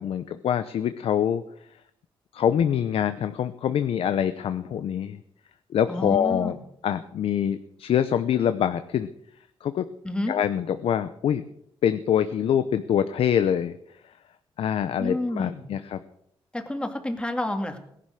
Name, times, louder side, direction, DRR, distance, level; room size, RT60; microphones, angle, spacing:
voice 1, 0.0-1.4 2.3-5.2 5.7-6.6 6.8-9.1 9.6-9.9 10.3-11.4 11.8-13.8 14.6-16.0, left 9 dB, 75° left, 11 dB, 0.8 m, -25 dB
voice 2, 5.9-6.6 10.0-10.3 15.0-15.6 16.5-17.8, left 1 dB, 10° left, 5 dB, 2.2 m, -29 dB
18.0 x 11.0 x 6.4 m, 0.71 s
cardioid pair, 115°, 10 cm